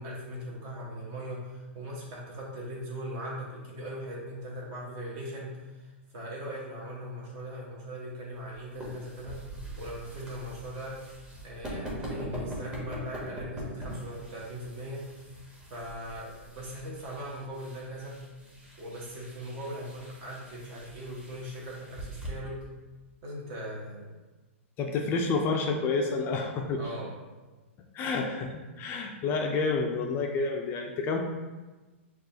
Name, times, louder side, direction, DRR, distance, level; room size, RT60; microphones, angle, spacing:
voice 1, 0.0-9.4 9.8-11.0 11.4-15.1 15.7-18.2 18.8-22.7 23.2-24.1 26.8-27.1, equal, 40° right, -4 dB, 1.4 m, -39 dB
sound 1, 8.4-22.3, right 1 dB, 10° right, 1.1 m, -43 dB
voice 2, 24.8-26.8 27.9-31.2, left 4 dB, 30° left, 2 dB, 0.4 m, -29 dB
5.9 x 2.4 x 2.7 m, 1.2 s
hypercardioid pair, 120°, 7 cm